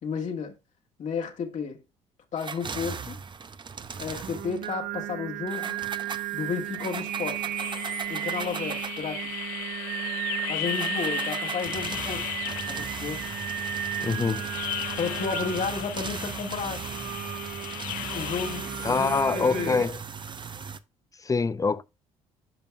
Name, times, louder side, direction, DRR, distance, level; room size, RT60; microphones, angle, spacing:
voice 1, 0.0-0.6 1.0-1.8 2.3-3.2 4.0-5.8 6.3-7.4 8.1-9.3 10.5-12.3 12.7-13.2 15.0-16.8 18.1-19.1 19.3-19.8, left 6 dB, 55° left, 1.7 m, -32 dB
sound 1, 2.4-4.7 5.5-9.1 10.6-20.8, right 5 dB, 35° right, 0.7 m, -38 dB
Singing, 3.9-19.9, right 12 dB, 65° right, 0.6 m, -35 dB
sound 2, 7.6-19.2, left 15 dB, 75° left, 0.5 m, -36 dB
voice 2, 14.0-14.6 18.8-20.0 21.2-21.8, left 4 dB, 25° left, 0.6 m, -25 dB
10.5 x 5.3 x 2.3 m
hypercardioid pair, 55°, 14 cm